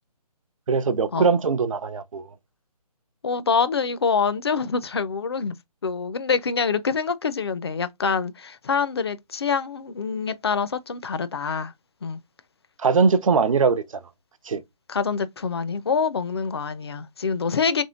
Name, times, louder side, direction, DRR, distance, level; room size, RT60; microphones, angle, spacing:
voice 1, 0.7-2.2 12.8-13.8 14.5-14.6, right 5 dB, 55° right, 0.6 m, -21 dB
voice 2, 3.2-5.6 5.8-11.7 12.0-12.2 14.9-17.8, left 5 dB, 40° left, 0.5 m, -25 dB
3.6 x 3.2 x 3.8 m
hypercardioid pair, 165°, 20 cm